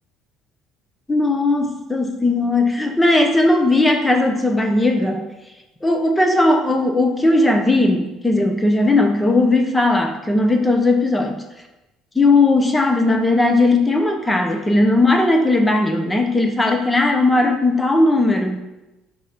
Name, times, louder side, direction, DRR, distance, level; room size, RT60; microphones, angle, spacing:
voice 1, 1.1-5.3 5.8-11.4 12.1-18.6, left 2 dB, 15° left, 4 dB, 1.1 m, -17 dB
8.2 x 5.5 x 5.2 m, 0.99 s
supercardioid pair, 85°, 0 cm